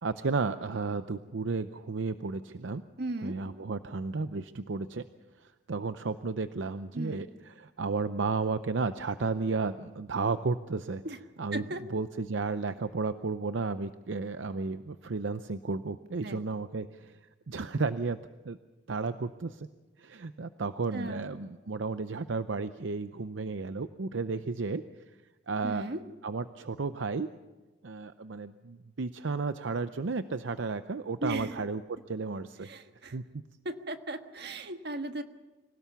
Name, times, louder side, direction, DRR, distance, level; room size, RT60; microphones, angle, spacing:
voice 1, 0.0-2.8 3.2-5.0 5.4-11.0 11.4-17.2 17.5-18.2 18.4-18.6 18.9-19.7 20.0-24.8 25.5-25.9 26.2-27.3 27.8-31.8 32.1-32.7 33.1-33.2, right 4 dB, 80° right, 11 dB, 0.6 m, -33 dB
voice 2, 3.0-3.4 6.9-7.2 11.0-11.2 11.5-11.8 16.2-16.4 20.9-21.2 25.6-26.0 31.2-31.6 32.6-33.2 33.6-35.2, right 2 dB, 60° right, 7 dB, 1.5 m, -36 dB
26.0 x 17.5 x 7.1 m, 1.2 s
head